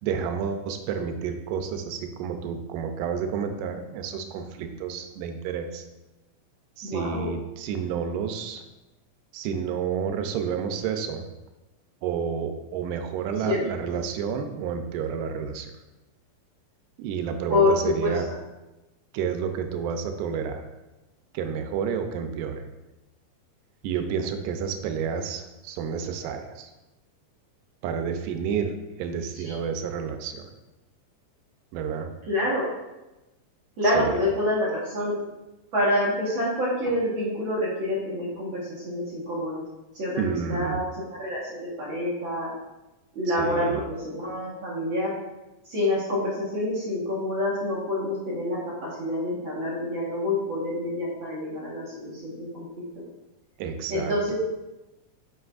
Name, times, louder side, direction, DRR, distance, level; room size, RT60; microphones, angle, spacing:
voice 1, 0.0-5.9 6.8-8.6 9.3-11.2 12.0-15.7 17.0-18.3 19.1-20.6 21.3-22.7 23.8-26.7 27.8-30.5 31.7-32.1 33.8-34.2 40.2-40.8 43.3-43.8 53.6-54.3, right 7 dB, 90° right, 6 dB, 2.2 m, -30 dB
voice 2, 6.8-7.3 13.4-13.6 17.5-18.1 29.4-29.6 32.3-32.7 33.8-35.1 35.7-39.6 39.9-42.5 43.1-45.1 45.6-52.6 52.9-53.0 53.9-54.3, left 1 dB, 50° right, -6 dB, 1.6 m, -27 dB
7.4 x 5.9 x 2.4 m, 1.0 s
omnidirectional pair, 3.7 m